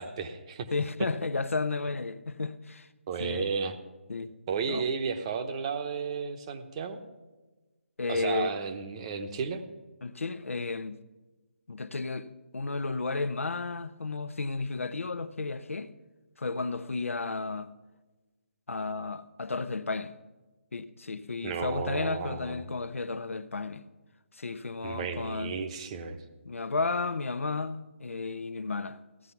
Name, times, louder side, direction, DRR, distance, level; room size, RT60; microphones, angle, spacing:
voice 1, 0.0-0.7 3.1-3.8 4.5-7.0 8.1-9.6 21.4-22.7 24.8-26.2, right 5 dB, 25° right, 0.9 m, -33 dB
voice 2, 0.7-2.9 3.2-3.5 4.1-4.3 4.7-4.9 8.0-8.5 10.0-11.0 11.7-12.3 12.5-15.9 16.4-17.7 18.7-20.1 20.7-23.8 24.3-25.5 26.4-29.0, left 3 dB, 80° left, 0.8 m, -33 dB
15.5 x 9.5 x 5.7 m
figure-of-eight pair, 155°, 7 cm